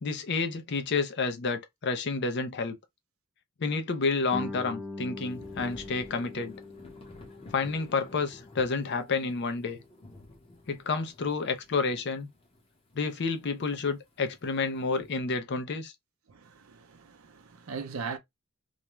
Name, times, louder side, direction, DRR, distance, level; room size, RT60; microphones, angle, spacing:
voice 1, 0.0-2.8 3.6-6.6 7.5-9.8 10.7-12.3 12.9-15.9, left 4 dB, 55° left, 0.5 m, -30 dB
Guitar, 4.3-9.7, left 2 dB, 5° right, 0.7 m, -43 dB
Thunder / Rain, 5.3-15.1, left 1 dB, 25° left, 0.8 m, -53 dB
voice 2, 16.3-18.2, right 5 dB, 75° right, 0.5 m, -39 dB
2.4 x 2.1 x 3.0 m
head